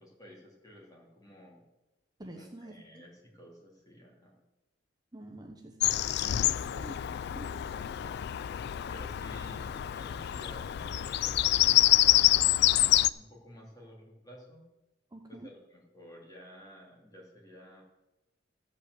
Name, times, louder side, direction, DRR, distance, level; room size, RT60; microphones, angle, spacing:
voice 1, 0.0-1.6 2.3-4.4 7.7-8.2 8.9-14.6 15.4-17.8, equal, 20° left, -3 dB, 3.2 m, -52 dB
voice 2, 2.2-3.0 5.1-5.8 6.2-7.0 7.3-7.5 15.1-15.5, right 1 dB, 20° right, 2 dB, 0.8 m, -47 dB
Bird vocalization bird call bird song, 5.8-13.1, left 14 dB, 60° left, 0.3 m, -26 dB
13.5 x 5.4 x 8.1 m, 1.0 s
head